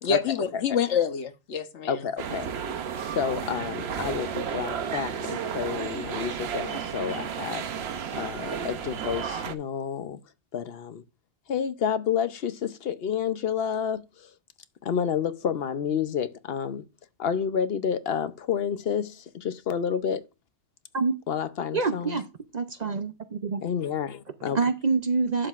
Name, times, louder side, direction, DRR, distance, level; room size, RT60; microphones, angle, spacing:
voice 1, 0.0-2.0, left 7 dB, 80° left, 1.3 m, -27 dB
voice 2, 1.9-2.5 3.0-7.6 8.1-10.2 10.5-11.0 11.5-14.3 14.8-16.8 17.2-20.3 21.3-22.2 23.6-24.6, left 7 dB, 60° left, 0.9 m, -29 dB
sound 1, 2.2-9.6, right 7 dB, 65° right, 1.0 m, -33 dB
voice 3, 21.7-22.2 22.5-23.6 24.5-25.5, right 4 dB, 45° right, 0.6 m, -26 dB
11.5 x 7.5 x 2.4 m
omnidirectional pair, 1.2 m